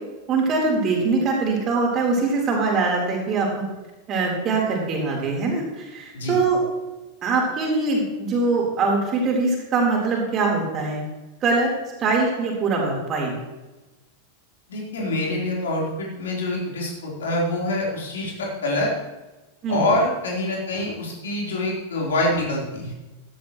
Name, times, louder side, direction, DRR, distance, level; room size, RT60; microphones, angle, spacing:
voice 1, 0.3-3.5 4.1-6.6 7.2-11.0 11.4-11.7 12.0-13.3 19.6-19.8, right 3 dB, 30° right, -1 dB, 3.9 m, -22 dB
voice 2, 14.7-18.9 19.7-22.9, left 1 dB, 65° left, -3 dB, 3.9 m, -25 dB
15.0 x 12.5 x 3.1 m, 1.1 s
figure-of-eight pair, 90°, 0 cm